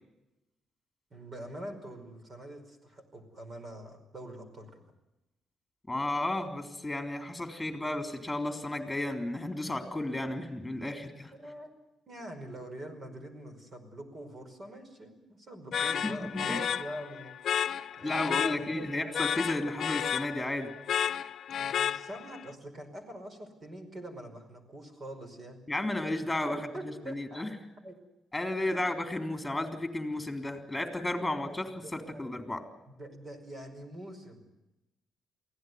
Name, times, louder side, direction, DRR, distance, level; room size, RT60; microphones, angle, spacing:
voice 1, 1.1-4.9 11.4-11.7 12.1-17.3 18.0-19.0 21.6-25.6 26.4-27.5 27.8-28.0 28.7-28.8 31.2-31.6 31.8-32.2 33.0-34.4, right 1 dB, 40° right, 7 dB, 5.1 m, -44 dB
voice 2, 5.9-11.3 15.7-16.6 18.0-20.7 25.7-27.5 28.3-32.6, left 1 dB, 10° left, 6 dB, 3.8 m, -33 dB
sound 1, 15.7-22.4, left 9 dB, 60° left, 0.8 m, -32 dB
23.5 x 16.5 x 9.5 m, 0.96 s
cardioid pair, 90°, 0 cm